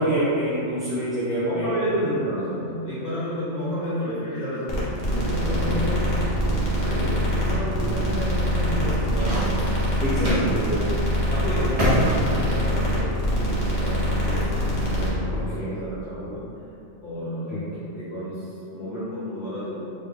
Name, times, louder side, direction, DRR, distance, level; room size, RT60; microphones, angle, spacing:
voice 1, 0.0-1.8 5.4-5.8 7.8-7.9 10.0-10.5 15.3-15.7 17.5-17.6, equal, ahead, -15 dB, 0.5 m, -26 dB
voice 2, 1.4-9.7 10.5-16.4 17.0-19.8, equal, 50° left, -12 dB, 1.1 m, -31 dB
sound 1, 4.7-15.1, equal, 75° left, 1.2 m, -24 dB
sound 2, 9.0-10.5 10.9-11.0 11.8-13.0, equal, 35° right, 0.8 m, -25 dB
3.4 x 2.5 x 3.6 m, 2.8 s
omnidirectional pair, 1.3 m